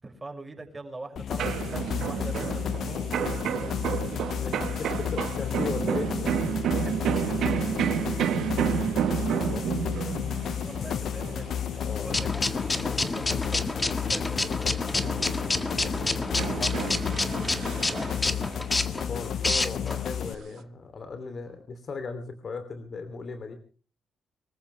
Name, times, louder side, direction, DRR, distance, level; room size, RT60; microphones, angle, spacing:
voice 1, 0.0-3.7 6.8-7.6 10.4-11.6 11.9-15.2 15.9-18.8, right 2 dB, 15° right, 2 dB, 6.2 m, -43 dB
sound 1, 1.2-20.4, left 9 dB, 65° left, 0.9 m, -32 dB
sound 2, 1.4-14.5 14.8-18.5 18.9-20.6, right 9 dB, 75° right, 1.3 m, -31 dB
voice 2, 4.1-6.3 9.2-9.7 11.8-12.2 19.1-23.6, left 4 dB, 45° left, 8 dB, 2.9 m, -37 dB
sound 3, 12.1-20.0, left 2 dB, 20° left, 1.7 m, -29 dB
25.0 x 14.5 x 3.3 m, 0.39 s
cardioid pair, 90°, 0 cm